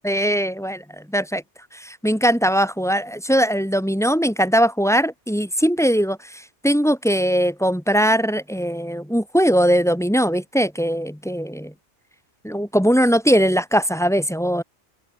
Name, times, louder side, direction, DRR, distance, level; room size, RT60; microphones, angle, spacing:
voice 1, 0.0-1.4 1.7-11.7 12.4-14.6, equal, ahead, 1.8 m, -20 dB
open air
omnidirectional pair, 1.3 m